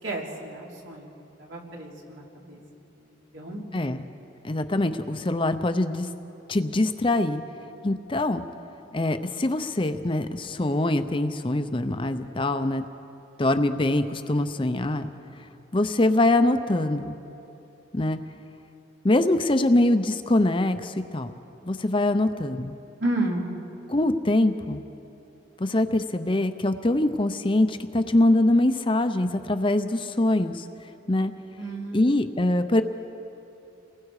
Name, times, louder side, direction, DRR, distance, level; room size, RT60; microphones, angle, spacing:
voice 1, 0.0-2.6 3.0-3.6 23.0-23.5 31.6-32.3, right 2 dB, 75° right, -2 dB, 3.4 m, -32 dB
voice 2, 3.7-4.0 4.4-6.1 6.5-7.4 7.8-8.4 8.9-12.8 13.4-15.1 15.7-17.2 17.9-18.2 19.0-21.3 21.6-22.7 23.9-24.8 25.6-30.7 31.1-31.3 31.9-32.8, left 1 dB, 25° left, 9 dB, 0.6 m, -23 dB
29.0 x 20.5 x 4.9 m, 3.0 s
head